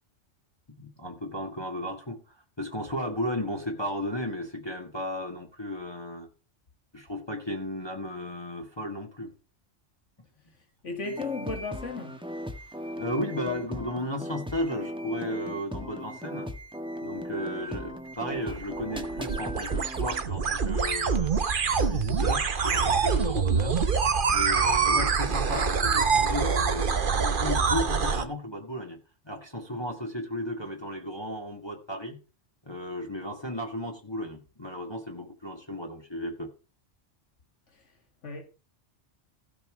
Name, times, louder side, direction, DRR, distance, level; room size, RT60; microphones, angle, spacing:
voice 1, 0.8-6.3 6.9-9.3 13.0-16.5 17.0-21.3 21.7-23.8 24.3-26.9 27.2-29.0 29.3-32.2 32.7-36.5, left 1 dB, 20° left, 1.7 m, -34 dB
voice 2, 10.8-12.2 37.7-37.8 38.2-38.4, left 4 dB, 85° left, 2.4 m, -35 dB
sound 1, 11.0-20.2, equal, 5° right, 1.4 m, -37 dB
sound 2, 18.4-28.3, right 5 dB, 50° right, 1.2 m, -25 dB
16.0 x 5.8 x 6.0 m
omnidirectional pair, 1.2 m